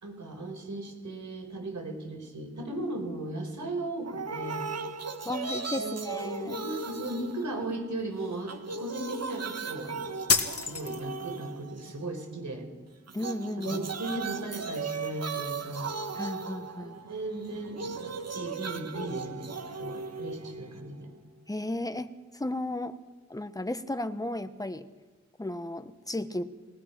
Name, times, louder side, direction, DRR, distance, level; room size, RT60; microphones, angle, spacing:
voice 1, 0.0-4.7 5.8-6.1 6.4-10.1 10.6-12.7 13.6-15.9 16.8-21.1 26.3-26.5, right 2 dB, 80° right, 4 dB, 4.8 m, -37 dB
sound 1, 4.0-8.0 8.3-12.1 13.1-21.1, right 4 dB, 60° right, 1.5 m, -37 dB
voice 2, 5.2-6.6 13.1-13.8 16.2-16.9 21.5-23.0 23.3-24.9 25.4-26.4, left 1 dB, 10° left, 9 dB, 1.2 m, -34 dB
sound 2, 10.3-11.3, left 4 dB, 55° left, 2.0 m, -27 dB
28.0 x 19.0 x 6.1 m, 1.3 s
wide cardioid pair, 100°, 29 cm